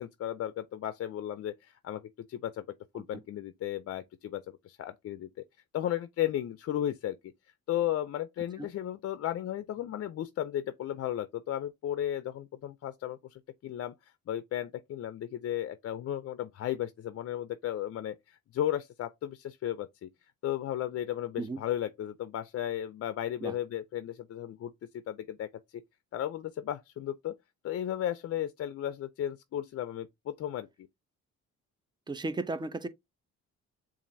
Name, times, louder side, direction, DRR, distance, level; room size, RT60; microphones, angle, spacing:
voice 1, 0.0-2.0 2.3-2.6 2.9-5.4 5.7-7.3 7.7-20.1 20.4-24.7 25.1-25.8 26.1-27.3 27.6-30.7, left 11 dB, 55° left, 0.5 m, -35 dB
voice 2, 32.1-32.9, right 2 dB, 15° right, 0.5 m, -34 dB
7.0 x 2.5 x 2.7 m
cardioid pair, 90°, 30 cm